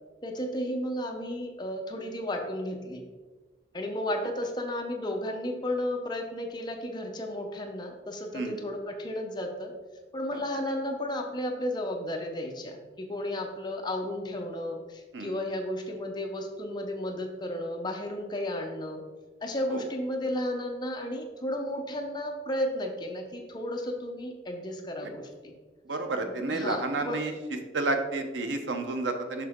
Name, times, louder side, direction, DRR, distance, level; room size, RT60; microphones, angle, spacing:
voice 1, 0.2-3.0 3.7-9.7 10.1-19.0 19.4-25.5 26.2-27.2, left 1 dB, 25° left, 2 dB, 0.8 m, -33 dB
voice 2, 25.9-27.3 27.7-29.5, right 2 dB, 85° right, 5 dB, 0.8 m, -30 dB
6.6 x 5.6 x 3.6 m, 1.3 s
head